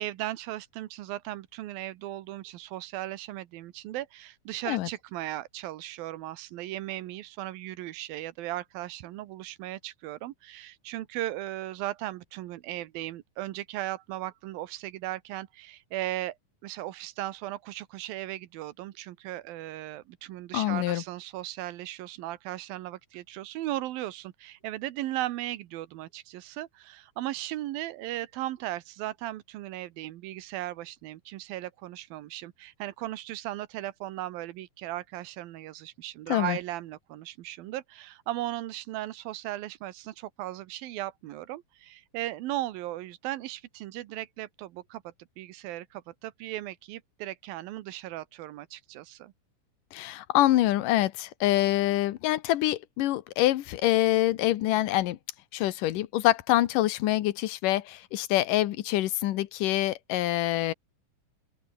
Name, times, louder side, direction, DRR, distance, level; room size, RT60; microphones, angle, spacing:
voice 1, 0.0-16.4 16.6-49.3, right 15 dB, 90° right, 2.9 m, -37 dB
voice 2, 20.5-21.0 36.3-36.6 49.9-55.2 55.5-60.7, left 15 dB, 70° left, 2.6 m, -25 dB
open air
omnidirectional pair, 4.0 m